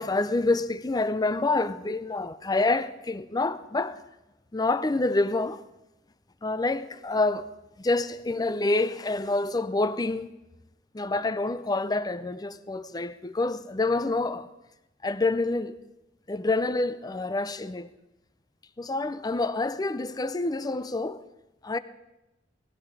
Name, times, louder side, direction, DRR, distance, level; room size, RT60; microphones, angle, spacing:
voice 1, 0.0-4.0 4.5-5.6 6.4-7.5 7.8-10.3 10.9-14.5 15.0-15.7 16.3-17.9 18.8-21.2 21.6-21.8, left 2 dB, 20° left, 0.5 m, -27 dB
18.5 x 16.5 x 4.8 m
head